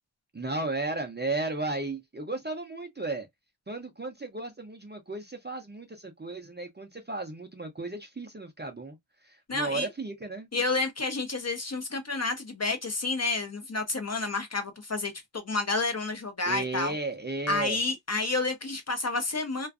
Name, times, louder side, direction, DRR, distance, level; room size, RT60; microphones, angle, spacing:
voice 1, 0.3-3.3 3.7-9.0 9.2-10.5 16.5-17.8, right 2 dB, 20° right, 0.4 m, -34 dB
voice 2, 9.5-9.9 10.5-16.9 17.5-19.7, left 3 dB, 35° left, 0.5 m, -30 dB
2.5 x 2.3 x 2.3 m
wide cardioid pair, 90°, 50 cm